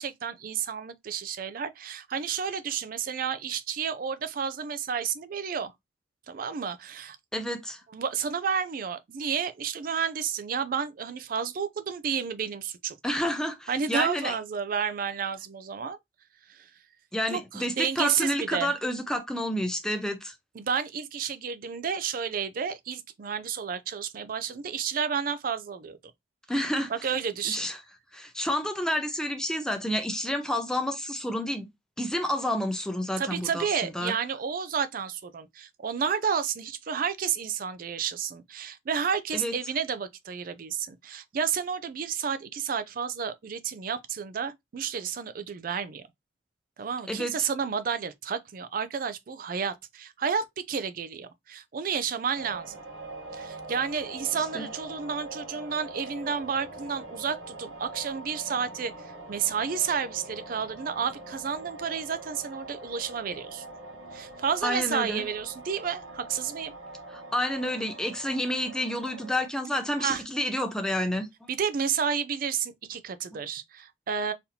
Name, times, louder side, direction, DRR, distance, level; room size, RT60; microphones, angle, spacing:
voice 1, 0.0-5.7 6.3-7.2 7.9-12.9 13.7-16.0 16.5-16.7 17.3-18.7 20.6-26.0 26.9-27.7 33.2-46.0 46.8-52.8 53.3-63.6 64.1-66.7 70.0-70.2 71.5-74.3, right 7 dB, 50° right, 0.4 m, -31 dB
voice 2, 7.3-7.8 13.0-14.3 17.1-20.3 26.5-27.8 28.1-31.7 32.0-34.1 39.3-39.5 47.1-47.5 54.4-54.7 64.6-65.2 67.1-71.5, left 1 dB, 5° left, 0.5 m, -30 dB
sound 1, 52.3-69.5, right 2 dB, 85° right, 1.2 m, -43 dB
4.1 x 2.7 x 2.7 m
head